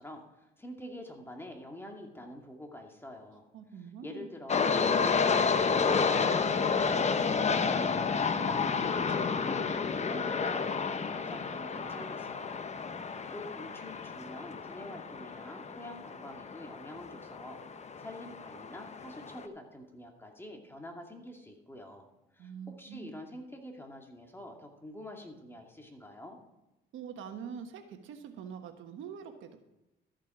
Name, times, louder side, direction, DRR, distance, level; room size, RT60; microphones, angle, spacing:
voice 1, 0.0-3.5 3.8-9.7 10.0-12.7 13.3-22.1 22.3-26.4, left 1 dB, 10° left, 2 dB, 2.2 m, -47 dB
voice 2, 3.5-4.3 22.4-23.1 26.9-29.6, right 7 dB, 85° right, 6 dB, 1.3 m, -44 dB
sound 1, 4.5-19.4, left 5 dB, 35° left, 0.8 m, -31 dB
13.5 x 7.4 x 4.9 m, 0.97 s
cardioid pair, 90°, 20 cm